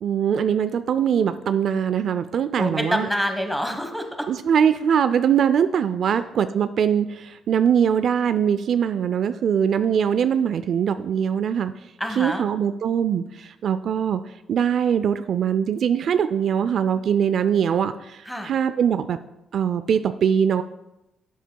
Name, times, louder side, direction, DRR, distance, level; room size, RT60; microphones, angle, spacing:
voice 1, 0.0-3.1 4.3-11.7 12.2-14.2 14.5-19.2 19.5-20.6, right 8 dB, 65° right, 12 dB, 0.3 m, -22 dB
voice 2, 2.6-4.3 6.0-6.2 12.0-12.5 18.2-18.5, equal, ahead, 5 dB, 1.2 m, -27 dB
12.0 x 7.4 x 2.3 m, 0.92 s
cardioid pair, 90°, 0 cm